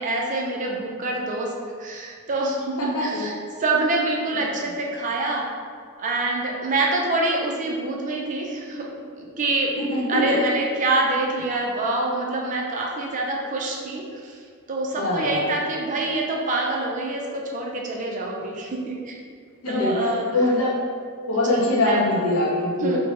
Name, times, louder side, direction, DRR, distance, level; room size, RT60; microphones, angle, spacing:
voice 1, 0.0-1.5 1.8-5.5 6.0-8.9 9.2-9.7 10.1-14.4 14.7-19.2 19.7-20.3 21.5-22.0 22.8-23.0, right 2 dB, 35° right, -1 dB, 0.3 m, -26 dB
voice 2, 2.8-3.2 9.8-10.4 14.9-15.5 19.6-20.8 21.3-23.0, left 1 dB, 75° left, -5 dB, 0.7 m, -23 dB
3.1 x 2.0 x 3.0 m, 2.1 s
head